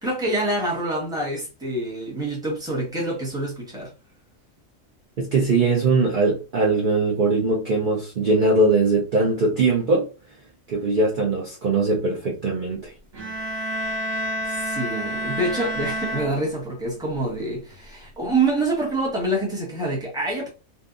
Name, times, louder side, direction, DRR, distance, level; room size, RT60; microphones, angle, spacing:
voice 1, 0.0-3.9 14.5-20.5, right 2 dB, 5° right, 0.9 m, -26 dB
voice 2, 5.2-10.1 10.7-12.9, right 3 dB, 50° right, 0.7 m, -21 dB
sound 1, 13.1-17.0, equal, 75° right, 1.7 m, -29 dB
2.8 x 2.4 x 2.4 m
omnidirectional pair, 1.4 m